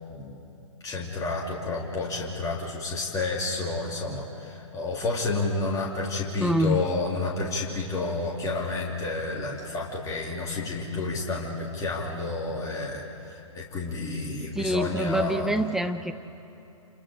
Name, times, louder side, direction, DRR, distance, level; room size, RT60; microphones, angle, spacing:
voice 1, 0.1-0.4 0.8-15.6, left 3 dB, 20° left, -3 dB, 3.1 m, -30 dB
voice 2, 6.4-6.8 14.5-16.1, equal, ahead, 8 dB, 0.5 m, -25 dB
29.5 x 28.0 x 5.0 m, 2.9 s
figure-of-eight pair, 120°, 17 cm